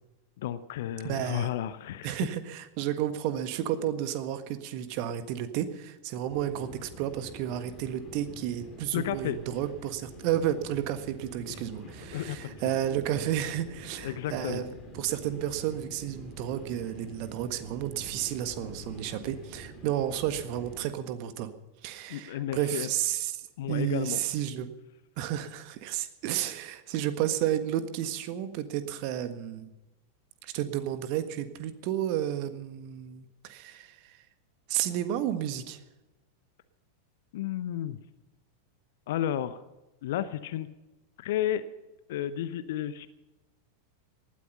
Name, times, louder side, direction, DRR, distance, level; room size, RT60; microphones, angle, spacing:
voice 1, 0.4-2.2 8.9-9.4 11.5-11.6 12.1-12.5 14.0-14.6 22.1-22.9 23.6-24.2 37.3-38.0 39.1-39.6 40.0-40.7 41.2-41.6 42.1-43.1, left 11 dB, 55° left, 14 dB, 0.8 m, -32 dB
voice 2, 1.0-1.5 2.0-14.7 14.9-21.5 21.8-23.4 23.7-24.7 25.2-29.7 30.4-34.2 34.7-35.8, right 11 dB, 45° right, 10 dB, 1.6 m, -32 dB
sound 1, 6.3-20.9, equal, 25° left, 5.7 m, -46 dB
19.5 x 13.0 x 5.5 m, 1.0 s
figure-of-eight pair, 90°, 0 cm